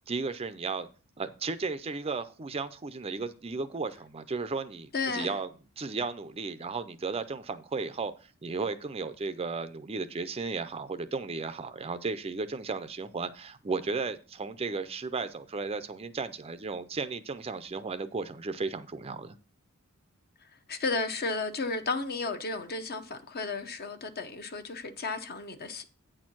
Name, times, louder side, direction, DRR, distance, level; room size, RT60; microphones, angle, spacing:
voice 1, 0.1-0.9 1.2-5.5 5.8-19.4, right 4 dB, 25° right, 0.5 m, -34 dB
voice 2, 4.9-5.3 20.4-25.8, left 3 dB, 45° left, 0.8 m, -33 dB
8.9 x 4.4 x 6.0 m
head